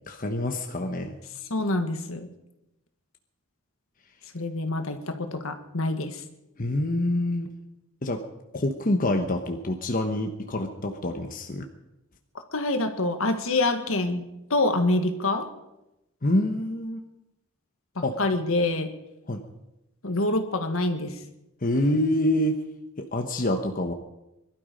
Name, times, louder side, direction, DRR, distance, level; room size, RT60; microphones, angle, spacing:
voice 1, 0.1-1.1 6.6-7.5 8.0-8.2 8.5-11.7 16.2-17.0 18.0-18.2 19.3-19.4 21.6-22.6 23.0-23.9, left 1 dB, 40° left, 4 dB, 1.1 m, -26 dB
voice 2, 1.5-2.3 4.3-6.2 12.5-15.5 18.0-18.9 20.0-21.2, left 2 dB, 70° left, 7 dB, 1.7 m, -26 dB
22.5 x 12.5 x 5.2 m, 0.91 s
head